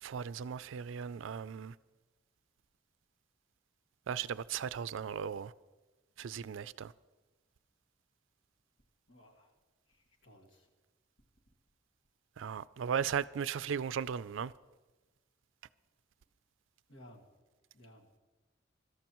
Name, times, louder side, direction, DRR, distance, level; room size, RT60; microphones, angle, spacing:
voice 1, 0.0-1.7 4.1-5.5 6.2-6.9 12.4-14.5, right 7 dB, 75° right, 0.4 m, -37 dB
voice 2, 9.1-9.5 9.9-10.7 16.9-17.2 17.7-18.2, equal, 85° left, 2.1 m, -58 dB
24.5 x 13.0 x 3.0 m
head